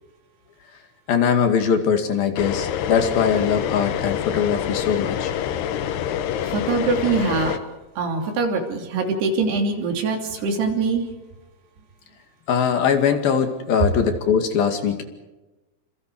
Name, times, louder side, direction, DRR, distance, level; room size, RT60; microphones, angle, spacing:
voice 1, 1.1-5.3 12.5-15.0, left 7 dB, 65° left, 6 dB, 3.9 m, -21 dB
sound 1, 2.4-7.6, left 9 dB, 80° left, 3.2 m, -26 dB
voice 2, 6.5-7.6 8.0-11.0, right 4 dB, 80° right, 3 dB, 5.0 m, -23 dB
28.0 x 27.0 x 4.9 m, 1.1 s
omnidirectional pair, 4.6 m